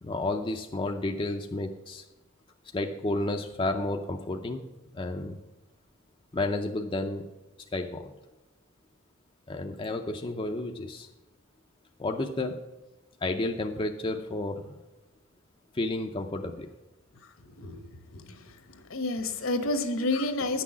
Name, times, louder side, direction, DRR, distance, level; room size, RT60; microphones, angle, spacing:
voice 1, 0.0-2.0 2.7-4.7 4.9-5.4 6.3-7.3 7.7-8.1 9.5-11.1 12.0-12.6 13.2-14.8 15.7-16.7, left 2 dB, 25° left, 3 dB, 0.5 m, -31 dB
voice 2, 18.1-18.4 18.7-20.6, left 2 dB, 65° left, 8 dB, 1.1 m, -30 dB
10.0 x 6.1 x 7.1 m, 1.0 s
head